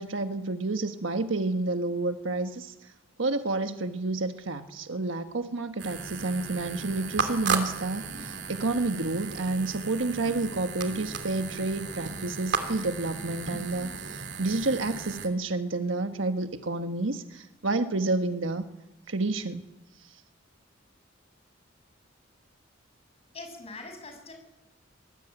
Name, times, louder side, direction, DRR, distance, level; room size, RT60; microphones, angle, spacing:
voice 1, 0.0-2.7 3.2-18.7 19.1-19.7, right 2 dB, 90° right, 7 dB, 1.4 m, -30 dB
sound 1, 5.8-15.3, right 5 dB, 65° right, 3.1 m, -35 dB
voice 2, 23.3-24.3, left 3 dB, 35° left, 4 dB, 6.7 m, -42 dB
24.0 x 20.0 x 9.1 m, 1.0 s
head